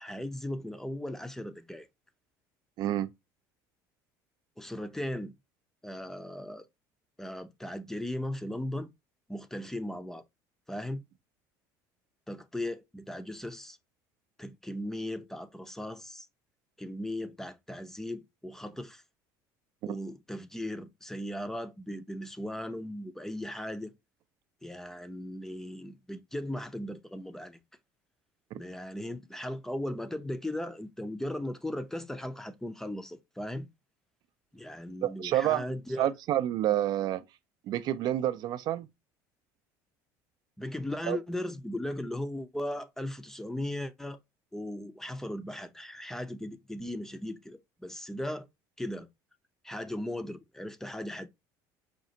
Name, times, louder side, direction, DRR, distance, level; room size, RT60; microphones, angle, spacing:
voice 1, 0.0-1.9 4.6-5.3 5.8-6.7 7.2-8.9 9.3-10.2 10.7-11.0 12.3-13.8 14.4-16.3 16.8-19.0 19.8-23.9 24.6-27.6 28.5-33.7 34.5-36.1 40.6-44.2 44.5-48.5 48.8-49.1 49.6-51.3, left 1 dB, 5° left, 0.5 m, -37 dB
voice 2, 2.8-3.1 19.8-20.0 28.5-28.6 35.0-37.2 37.7-38.9 41.1-41.2, right 13 dB, 55° right, 0.4 m, -29 dB
5.1 x 2.4 x 2.7 m
cardioid pair, 115°, 8 cm